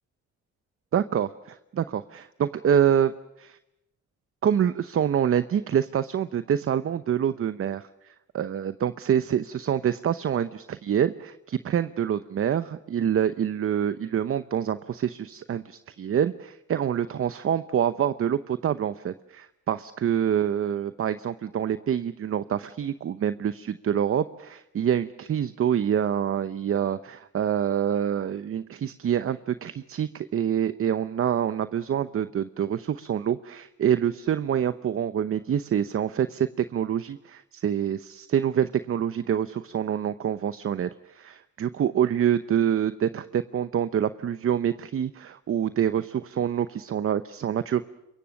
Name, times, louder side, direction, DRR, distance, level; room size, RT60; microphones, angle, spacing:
voice 1, 0.9-3.1 3.4-3.6 4.4-47.8, right 9 dB, 45° right, 12 dB, 0.8 m, -26 dB
27.5 x 23.0 x 6.5 m, 0.89 s
cardioid pair, 90°, 30 cm